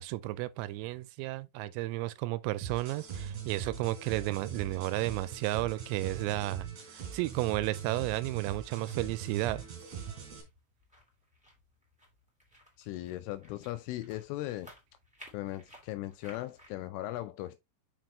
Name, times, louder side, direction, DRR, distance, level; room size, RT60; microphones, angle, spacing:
voice 1, 0.0-9.6, right 17 dB, 90° right, 3.3 m, -33 dB
sound 1, 2.6-10.4, right 7 dB, 45° right, 3.1 m, -41 dB
sound 2, 7.5-16.7, equal, ahead, 1.7 m, -59 dB
voice 2, 12.8-14.7 15.3-17.6, left 16 dB, 85° left, 2.9 m, -38 dB
6.8 x 6.0 x 3.1 m
omnidirectional pair, 5.9 m